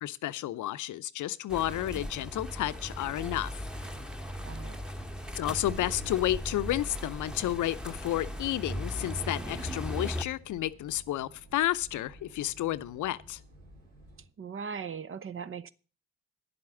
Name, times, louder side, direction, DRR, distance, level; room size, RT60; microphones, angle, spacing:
voice 1, 0.0-3.5 5.4-13.4, left 14 dB, 60° left, 0.7 m, -31 dB
sound 1, 1.5-10.2, equal, ahead, 1.2 m, -38 dB
voice 2, 4.4-4.8 14.4-15.7, right 6 dB, 40° right, 0.8 m, -39 dB
sound 2, 5.6-14.3, right 2 dB, 70° right, 4.4 m, -50 dB
10.5 x 7.8 x 7.1 m
hypercardioid pair, 45°, 34 cm